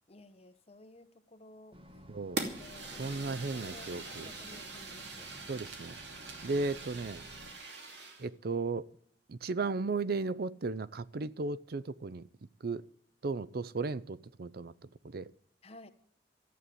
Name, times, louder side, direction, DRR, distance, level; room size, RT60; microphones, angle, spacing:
voice 1, 0.1-1.8 2.6-5.5 6.6-6.7 15.6-15.9, left 1 dB, 35° left, 1.2 m, -55 dB
sound 1, 1.7-7.5, equal, 30° right, 1.4 m, -54 dB
voice 2, 2.1-2.4 3.0-4.3 5.5-5.9 6.4-7.2 8.2-8.9 9.3-12.2 12.6-12.8 13.2-14.7 15.0-15.3, right 3 dB, 60° right, 0.5 m, -35 dB
Fire, 2.4-8.3, right 3 dB, 80° right, 2.7 m, -43 dB
14.0 x 8.4 x 9.3 m
head